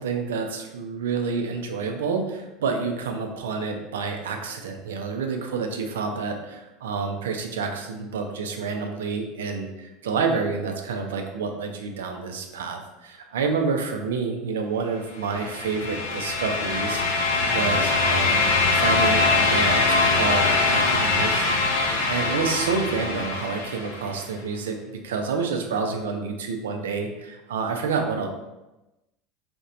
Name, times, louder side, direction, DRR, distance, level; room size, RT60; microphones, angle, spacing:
voice 1, 0.0-24.8 25.0-28.3, right 5 dB, 80° right, 4 dB, 0.3 m, -29 dB
sound 1, 15.2-24.1, left 3 dB, 85° left, 0.4 m, -23 dB
2.8 x 2.1 x 2.5 m, 1.0 s
hypercardioid pair, 80°, 0 cm